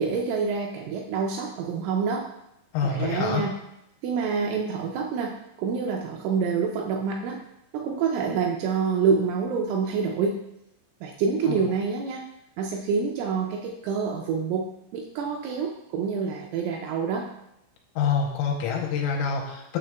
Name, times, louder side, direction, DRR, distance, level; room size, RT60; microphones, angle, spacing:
voice 1, 0.0-2.3 2.8-3.5 4.0-7.4 7.7-10.4 11.0-12.3 12.6-17.3, right 5 dB, 80° right, 0 dB, 2.9 m, -27 dB
voice 2, 2.7-3.4 11.5-11.6 18.0-19.8, left 6 dB, 80° left, 0 dB, 3.2 m, -26 dB
10.0 x 6.1 x 2.3 m, 0.84 s
omnidirectional pair, 6.0 m